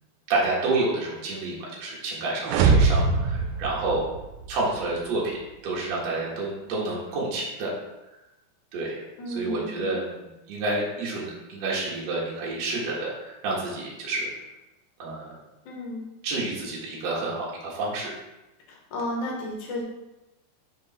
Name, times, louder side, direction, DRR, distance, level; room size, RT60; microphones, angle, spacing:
voice 1, 0.3-4.0 4.5-5.4 5.6-7.7 8.7-8.9 9.3-14.3 15.0-15.4 16.2-18.1, right 2 dB, 50° right, -5 dB, 2.3 m, -29 dB
sound 1, 2.4-4.6, right 4 dB, 90° right, 2.7 m, -22 dB
voice 2, 9.2-9.9 15.7-16.1 18.9-19.8, left 1 dB, 60° left, -1 dB, 2.5 m, -32 dB
6.1 x 5.1 x 4.3 m, 1.0 s
omnidirectional pair, 4.7 m